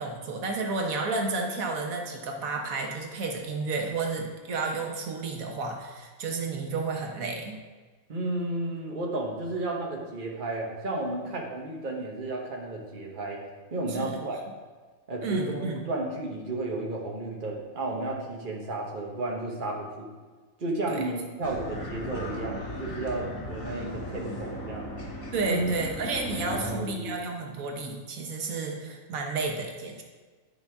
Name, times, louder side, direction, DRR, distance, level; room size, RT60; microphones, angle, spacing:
voice 1, 0.0-7.6 13.9-14.2 15.2-15.8 20.9-21.0 25.3-30.0, right 3 dB, 90° right, 2 dB, 1.4 m, -31 dB
voice 2, 8.1-13.4 13.7-14.4 15.1-20.1 20.6-24.9 25.5-25.7 26.5-27.1, right 2 dB, 40° right, -1 dB, 1.3 m, -32 dB
sound 1, 21.4-26.8, equal, 75° left, 2.1 m, -37 dB
11.0 x 5.5 x 3.5 m, 1.4 s
omnidirectional pair, 1.4 m